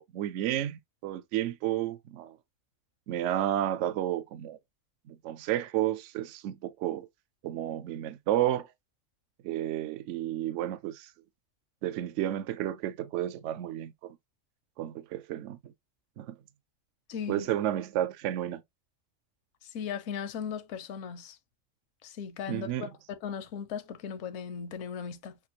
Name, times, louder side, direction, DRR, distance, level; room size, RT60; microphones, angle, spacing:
voice 1, 0.0-2.3 3.1-4.6 5.1-7.1 7.4-8.7 9.4-11.1 11.8-14.2 14.8-15.7 16.2-16.3 17.3-18.6 22.5-22.9, right 12 dB, 70° right, 0.8 m, -31 dB
voice 2, 17.1-17.5 19.7-21.4 22.0-25.4, left 7 dB, 75° left, 1.0 m, -37 dB
5.9 x 2.5 x 2.7 m
omnidirectional pair, 1.4 m